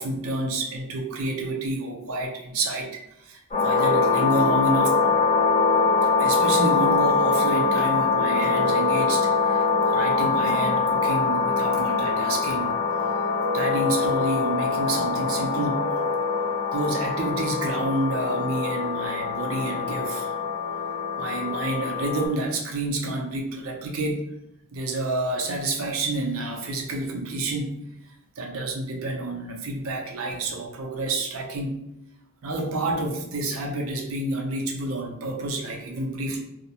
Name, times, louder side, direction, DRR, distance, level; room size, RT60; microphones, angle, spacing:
voice 1, 0.0-5.1 6.2-12.8 13.5-16.0 16.7-20.4 21.2-24.2 24.7-27.8 28.4-31.9 32.4-36.4, right 2 dB, 85° right, 1 dB, 0.5 m, -29 dB
sound 1, 3.5-22.3, left 4 dB, 30° left, 0.6 m, -23 dB
2.3 x 2.0 x 2.8 m, 0.84 s
head